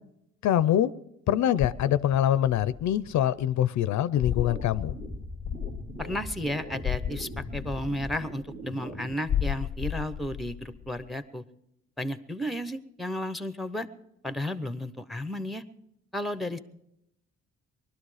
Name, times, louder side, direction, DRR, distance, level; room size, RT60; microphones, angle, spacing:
voice 1, 0.4-0.9 1.3-5.0, left 11 dB, 70° left, 16 dB, 0.6 m, -24 dB
sound 1, 1.7-3.3 4.2-8.7 9.3-11.1, left 9 dB, 30° left, 0.6 m, -34 dB
sound 2, 4.1-9.1, right 1 dB, 45° right, 2.1 m, -41 dB
voice 2, 6.0-11.4 12.0-13.9 14.2-15.6 16.1-16.6, left 1 dB, ahead, 13 dB, 0.8 m, -33 dB
20.0 x 12.5 x 4.9 m, 0.82 s
cardioid pair, 90°, 30 cm